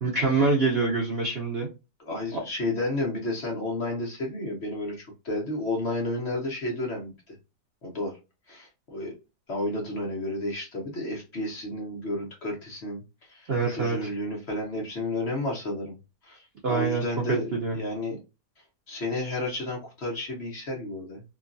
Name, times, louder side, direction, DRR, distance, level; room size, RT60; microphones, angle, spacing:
voice 1, 0.0-1.7 2.3-2.4 13.5-14.1 16.6-17.0 17.5-17.8, right 3 dB, 60° right, 0.7 m, -25 dB
voice 2, 2.1-7.4 7.8-8.2 8.5-9.1 9.5-13.0 13.3-16.0 16.2-18.2 18.9-21.2, left 1 dB, 50° left, 1.0 m, -32 dB
3.0 x 2.3 x 2.5 m
omnidirectional pair, 1.7 m